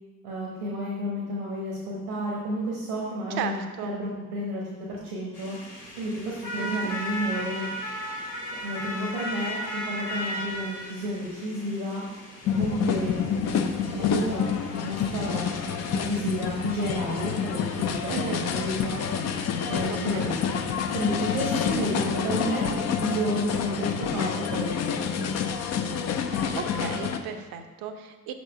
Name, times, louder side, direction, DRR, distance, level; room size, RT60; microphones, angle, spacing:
voice 1, 0.2-5.6 6.0-7.7 8.6-12.0 12.6-14.5 14.8-19.0 19.7-20.6 20.9-25.3, equal, 75° right, -4 dB, 1.2 m, -31 dB
voice 2, 3.3-3.9 6.6-6.9 18.1-18.5 19.9-20.3 26.3-28.3, right 7 dB, 50° right, 7 dB, 0.8 m, -35 dB
sound 1, 5.3-22.0, equal, 85° left, 1.3 m, -38 dB
sound 2, 12.4-27.2, left 7 dB, 35° left, 0.6 m, -28 dB
6.1 x 4.2 x 5.8 m, 1.2 s
figure-of-eight pair, 50°, 45 cm